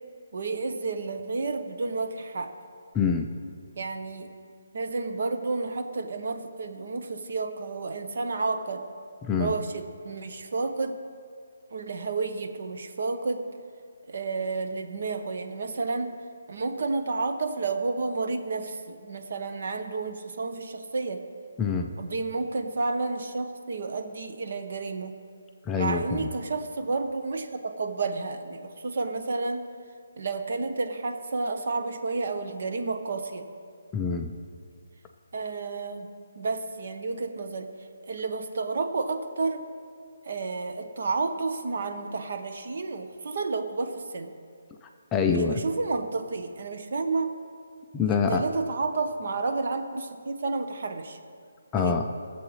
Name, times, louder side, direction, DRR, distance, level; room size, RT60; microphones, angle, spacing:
voice 1, 0.3-2.5 3.7-4.3 4.7-8.9 9.4-10.9 11.7-13.4 14.1-16.1 16.5-21.2 22.0-25.1 25.8-29.7 30.2-33.5 35.3-36.1 36.4-37.7 38.1-39.7 40.2-44.3 45.3-47.3 48.0-51.2 51.7-52.0, right 3 dB, 45° right, 7 dB, 0.9 m, -31 dB
voice 2, 2.9-3.3 9.2-9.5 21.6-21.9 25.7-26.3 33.9-34.3 45.1-45.6 47.9-48.4 51.7-52.0, left 6 dB, 10° left, 3 dB, 0.3 m, -25 dB
21.0 x 7.4 x 3.2 m, 2.2 s
hypercardioid pair, 175°, 0 cm